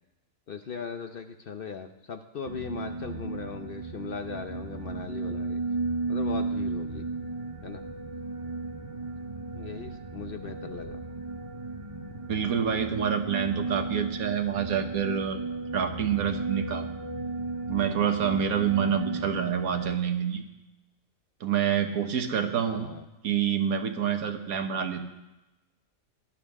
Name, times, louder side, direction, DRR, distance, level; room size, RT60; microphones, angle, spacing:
voice 1, 0.5-5.6 6.1-7.1 7.6-7.8 9.5-11.0 22.7-23.0, left 6 dB, 55° left, 7 dB, 0.7 m, -38 dB
sound 1, 2.5-20.0, right 3 dB, 35° right, 0.6 m, -34 dB
voice 2, 12.3-15.4 15.7-16.9 17.7-20.4 21.4-22.9 23.2-25.0, right 8 dB, 85° right, 6 dB, 1.5 m, -27 dB
18.0 x 11.5 x 3.6 m, 1.0 s
omnidirectional pair, 1.5 m